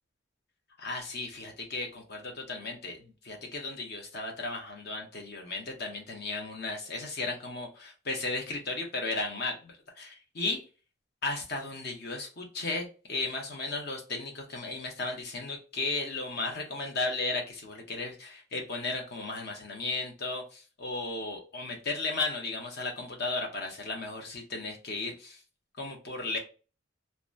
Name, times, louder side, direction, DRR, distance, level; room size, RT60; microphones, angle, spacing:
voice 1, 0.8-10.6 11.2-25.4 25.8-26.4, left 3 dB, 55° left, 2 dB, 0.8 m, -35 dB
2.7 x 2.2 x 2.4 m, 0.35 s
head